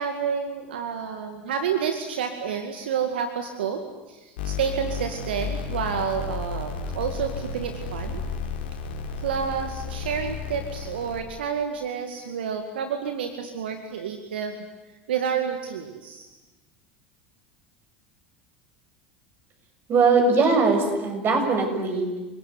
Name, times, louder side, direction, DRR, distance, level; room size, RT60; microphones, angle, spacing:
voice 1, 0.0-8.2 9.2-14.5 15.1-16.3, right 7 dB, 75° right, 7 dB, 2.1 m, -29 dB
sound 1, 4.4-11.2, left 5 dB, 75° left, 5.1 m, -33 dB
voice 2, 19.9-22.2, right 4 dB, 40° right, 4 dB, 7.4 m, -21 dB
29.0 x 18.5 x 9.7 m, 1.1 s
hypercardioid pair, 80°, 5 cm